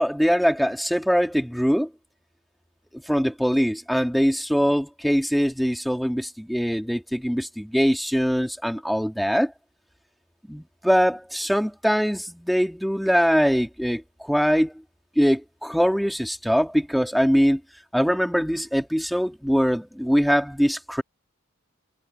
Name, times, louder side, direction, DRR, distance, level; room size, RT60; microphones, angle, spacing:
voice 1, 0.0-1.9 3.1-9.5 10.5-14.7 15.2-17.6 17.9-21.0, equal, ahead, 2.8 m, -22 dB
head